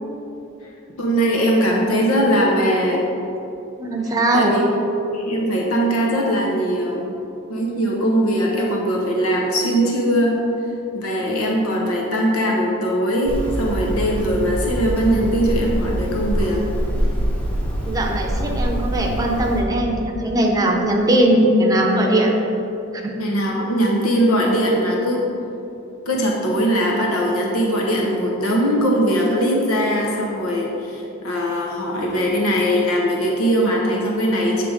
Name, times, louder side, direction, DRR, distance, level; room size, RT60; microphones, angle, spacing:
voice 1, 1.0-3.0 4.3-4.7 5.1-7.1 7.5-10.4 10.9-16.6 23.2-25.3 26.1-34.6, equal, 90° left, -2 dB, 0.9 m, -20 dB
voice 2, 3.8-4.5 17.8-22.3 23.0-23.1, right 1 dB, 15° right, 0 dB, 0.7 m, -19 dB
Hammer, 13.3-19.6, right 1 dB, 5° left, 0.9 m, -24 dB
7.6 x 3.3 x 5.0 m, 2.8 s
head